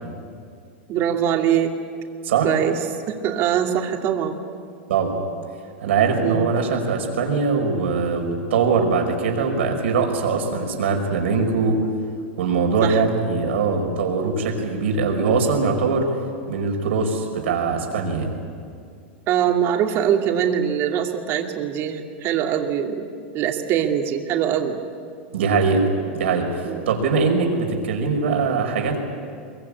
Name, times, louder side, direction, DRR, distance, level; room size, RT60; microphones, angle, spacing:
voice 1, 0.9-1.7 2.4-2.8 3.1-4.4 6.2-6.5 12.8-13.0 19.3-23.1 23.3-24.8 26.6-26.9, right 9 dB, 40° right, 3 dB, 2.6 m, -22 dB
voice 2, 5.8-11.8 12.4-16.1 16.5-18.3 25.3-29.0, right 4 dB, 80° right, 3 dB, 5.1 m, -22 dB
23.0 x 22.5 x 8.6 m, 2.3 s
supercardioid pair, 130°, 6 cm